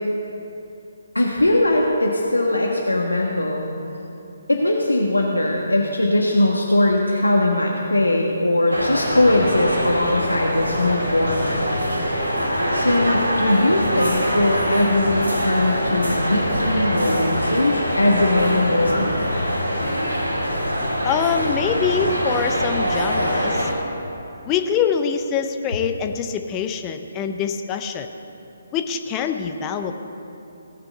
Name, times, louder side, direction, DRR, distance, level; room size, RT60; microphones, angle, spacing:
voice 1, 1.1-3.6 4.5-11.6 12.7-19.2, left 1 dB, 80° left, -1 dB, 1.4 m, -20 dB
sound 1, 8.7-23.7, equal, 80° right, 2.6 m, -23 dB
voice 2, 21.0-23.7 24.5-28.1 28.7-29.9, left 7 dB, 20° left, 6 dB, 0.7 m, -24 dB
17.5 x 6.1 x 7.9 m, 2.8 s
figure-of-eight pair, 140°, 0 cm